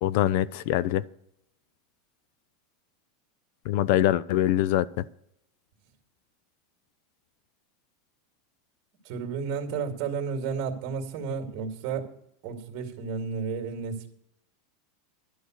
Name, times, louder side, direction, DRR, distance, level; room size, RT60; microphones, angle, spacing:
voice 1, 0.0-1.0 3.7-5.0, left 13 dB, 50° left, 20 dB, 0.4 m, -24 dB
voice 2, 9.0-12.1 12.4-14.1, right 5 dB, 40° right, 3 dB, 2.2 m, -32 dB
12.0 x 8.1 x 6.4 m, 0.76 s
supercardioid pair, 170°, 0 cm